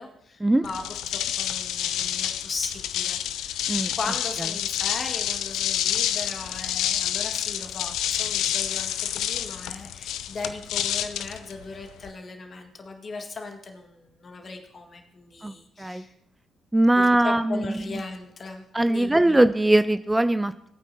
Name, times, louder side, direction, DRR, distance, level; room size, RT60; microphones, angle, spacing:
voice 1, 0.0-3.6 4.0-16.1 17.0-19.4, left 3 dB, 45° left, 4 dB, 1.7 m, -38 dB
sound 1, 0.6-12.1, left 11 dB, 65° left, 0.4 m, -28 dB
voice 2, 16.7-17.9 18.7-20.7, right 1 dB, 15° right, 12 dB, 0.4 m, -21 dB
18.5 x 9.1 x 2.8 m, 0.80 s
figure-of-eight pair, 40°, 0 cm